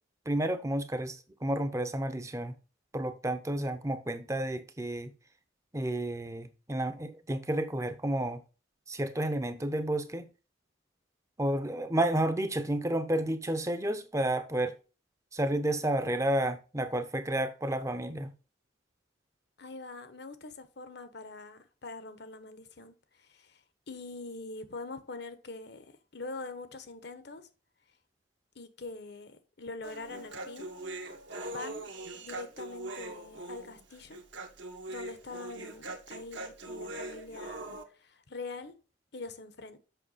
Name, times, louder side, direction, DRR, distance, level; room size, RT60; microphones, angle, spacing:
voice 1, 0.3-2.5 2.9-5.1 5.7-8.4 8.9-10.3 11.4-14.7 15.3-18.3, right 1 dB, 15° right, 0.8 m, -31 dB
voice 2, 19.6-25.8 26.1-27.5 28.5-30.7 31.5-31.9 32.2-34.2 34.9-38.7 39.1-39.8, left 3 dB, 60° left, 1.1 m, -44 dB
Human voice, 29.8-37.8, right 2 dB, 70° right, 1.5 m, -42 dB
7.7 x 5.9 x 4.1 m
head